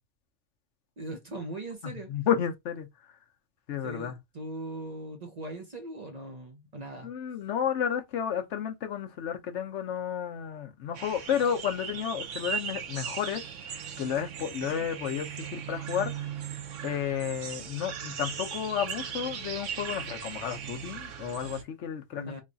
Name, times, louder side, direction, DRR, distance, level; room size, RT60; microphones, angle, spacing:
voice 1, 1.0-2.1 3.8-7.1 14.6-14.9 22.1-22.4, right 1 dB, 40° right, 0.8 m, -40 dB
voice 2, 2.1-2.9 3.7-4.2 7.0-16.3 16.8-22.4, left 8 dB, 70° left, 1.0 m, -32 dB
sound 1, 10.9-21.6, right 8 dB, 85° right, 1.0 m, -38 dB
3.2 x 2.3 x 3.8 m
omnidirectional pair, 1.3 m